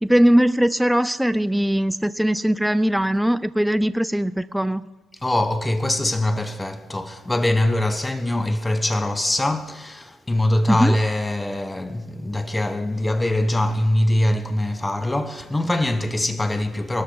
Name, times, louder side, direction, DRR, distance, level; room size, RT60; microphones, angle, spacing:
voice 1, 0.0-4.8 10.7-11.0, equal, 5° right, 0.4 m, -20 dB
voice 2, 5.2-17.0, left 1 dB, 15° left, 1.0 m, -23 dB
22.0 x 13.0 x 4.0 m
cardioid pair, 90°, 0 cm